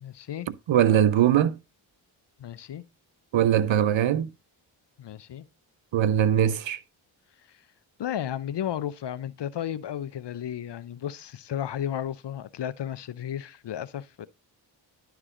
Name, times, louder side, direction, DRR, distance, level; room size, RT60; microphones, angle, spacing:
voice 1, 0.0-0.5 2.4-2.8 5.0-5.5 8.0-14.3, left 10 dB, 55° left, 0.8 m, -33 dB
voice 2, 0.7-1.5 3.3-4.3 5.9-6.8, right 10 dB, 65° right, 0.8 m, -21 dB
11.0 x 4.7 x 3.8 m
supercardioid pair, 40°, 50 cm